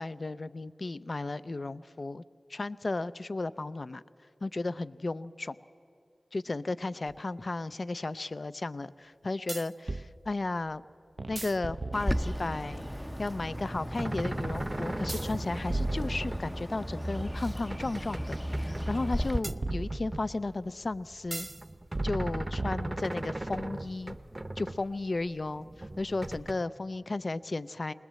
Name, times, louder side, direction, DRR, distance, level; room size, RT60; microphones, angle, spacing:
voice 1, 0.0-2.2 2.5-4.0 4.4-5.6 6.3-10.8 11.3-21.5 22.0-24.2 24.6-27.9, left 2 dB, 60° left, 15 dB, 0.5 m, -34 dB
sound 1, 7.1-7.2 9.5-10.1 11.2-12.5 15.1-16.8 19.4-20.4 21.3-21.6 21.9-23.3, right 2 dB, 50° right, 0.5 m, -36 dB
Bird, 11.9-19.4, equal, 5° left, 0.6 m, -35 dB
sound 2, 13.2-20.5 20.8-24.8 25.2-26.5, right 1 dB, 30° right, 0.9 m, -39 dB
22.0 x 20.0 x 7.5 m, 2.5 s
wide cardioid pair, 55°, 0 cm